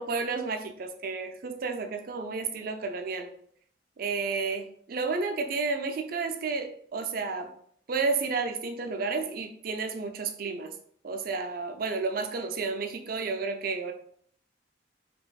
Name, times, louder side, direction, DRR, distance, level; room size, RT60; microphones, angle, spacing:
voice 1, 0.0-3.3 4.0-7.5 7.9-10.7 11.0-13.9, right 4 dB, 50° right, 6 dB, 0.5 m, -31 dB
5.1 x 3.0 x 2.3 m, 0.62 s
head